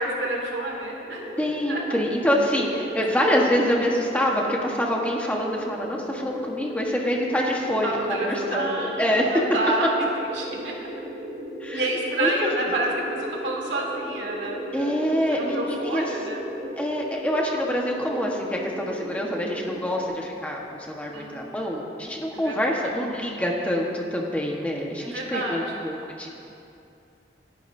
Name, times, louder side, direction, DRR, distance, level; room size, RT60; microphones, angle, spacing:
voice 1, 0.0-1.3 1.7-2.0 2.5-3.0 7.8-9.9 10.3-10.7 11.7-16.4 21.1-21.3 22.4-22.7 25.0-25.8, right 1 dB, 85° right, -1 dB, 2.4 m, -29 dB
sound 1, 1.1-20.0, equal, 55° right, 2.8 m, -36 dB
voice 2, 1.4-9.4 11.6-11.8 12.2-12.3 14.7-16.1 16.8-20.6 20.9-26.3, equal, 10° left, -2 dB, 1.3 m, -26 dB
27.5 x 11.0 x 2.7 m, 2.6 s
head